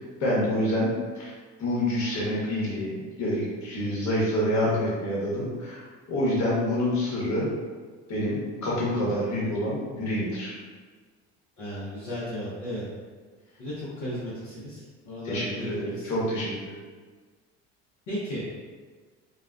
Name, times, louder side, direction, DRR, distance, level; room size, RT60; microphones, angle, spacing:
voice 1, 0.2-1.3 1.6-2.9 3.2-5.8 6.1-7.5 8.1-10.5 15.2-16.8, left 1 dB, 55° left, -6 dB, 1.1 m, -27 dB
voice 2, 11.6-12.8 13.6-16.1 18.1-18.4, equal, 75° left, -11 dB, 0.9 m, -35 dB
2.4 x 2.1 x 2.4 m, 1.5 s
hypercardioid pair, 65°, 33 cm